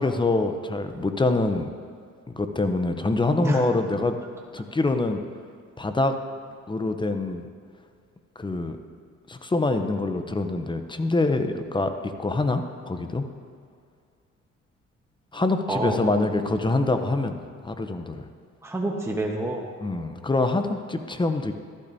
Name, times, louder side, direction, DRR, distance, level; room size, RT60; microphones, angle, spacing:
voice 1, 0.0-1.7 2.3-4.2 4.5-5.2 5.8-6.2 6.7-7.5 8.4-8.8 9.3-13.3 15.3-18.3 19.8-21.5, left 2 dB, 15° left, 8 dB, 0.7 m, -25 dB
voice 2, 3.4-3.7 15.7-16.6 18.6-19.7, right 2 dB, 10° right, 0 dB, 1.1 m, -29 dB
13.5 x 12.0 x 2.7 m, 2.2 s
cardioid pair, 90°, 30 cm